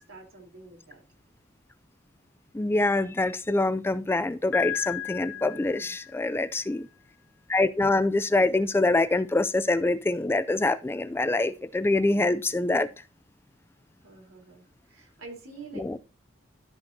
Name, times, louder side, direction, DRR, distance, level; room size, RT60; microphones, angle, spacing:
voice 1, 0.1-1.0 5.3-6.0 14.0-16.0, right 3 dB, 80° right, 3.5 m, -47 dB
voice 2, 2.5-6.9 7.5-12.9 15.8-16.0, left 2 dB, 10° left, 0.3 m, -25 dB
Piano, 4.5-6.4, left 10 dB, 65° left, 1.1 m, -34 dB
13.0 x 6.2 x 2.7 m
head